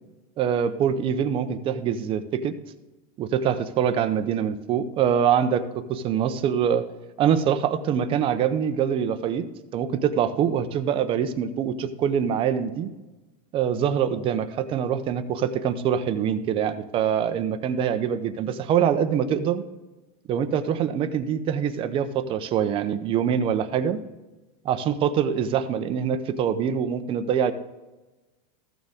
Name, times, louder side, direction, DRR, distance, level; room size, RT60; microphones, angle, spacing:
voice 1, 0.4-2.6 3.2-6.8 7.2-9.5 9.7-12.9 13.5-19.6 20.3-24.0 24.6-27.5, right 8 dB, 25° right, 11 dB, 0.6 m, -24 dB
14.5 x 6.5 x 3.6 m, 1.1 s
supercardioid pair, 160°, 21 cm